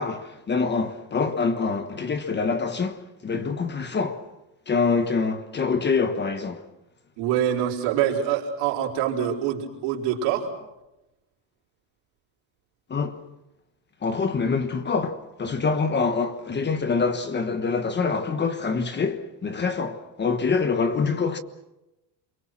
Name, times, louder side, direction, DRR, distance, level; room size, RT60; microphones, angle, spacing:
voice 1, 0.0-4.2 4.7-6.6 12.9-13.2 14.0-21.4, left 4 dB, 20° left, 1.3 m, -25 dB
voice 2, 7.2-10.5, right 9 dB, 90° right, 4.6 m, -25 dB
29.5 x 23.5 x 6.1 m
cardioid pair, 155°, 48 cm